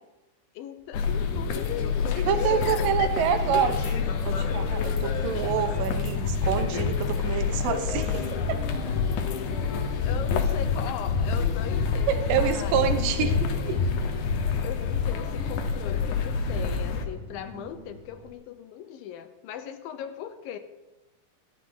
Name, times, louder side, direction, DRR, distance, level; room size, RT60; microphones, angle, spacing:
voice 1, 0.5-3.1 9.4-12.8 13.2-14.0 14.6-20.6, left 10 dB, 90° left, 9 dB, 2.7 m, -38 dB
sound 1, 0.8-18.3, equal, 25° right, 2.0 m, -49 dB
sound 2, 0.9-17.1, left 5 dB, 70° left, 2.3 m, -27 dB
voice 2, 2.3-8.6 12.1-13.8, right 8 dB, 80° right, 8 dB, 2.6 m, -27 dB
13.0 x 11.5 x 3.9 m, 1.0 s
omnidirectional pair, 4.0 m